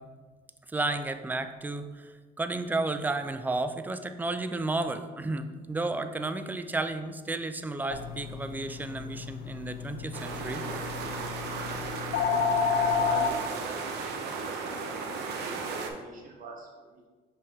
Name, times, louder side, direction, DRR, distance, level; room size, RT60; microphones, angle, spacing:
voice 1, 0.7-10.6, right 2 dB, 10° right, 9 dB, 0.4 m, -32 dB
sound 1, 7.9-13.3, left 6 dB, 65° left, 0.5 m, -31 dB
sound 2, 10.1-15.9, right 4 dB, 80° right, 0.8 m, -35 dB
voice 2, 12.6-17.1, right 3 dB, 55° right, 0 dB, 1.4 m, -45 dB
5.9 x 4.6 x 3.6 m, 1.4 s
cardioid pair, 110°, 17 cm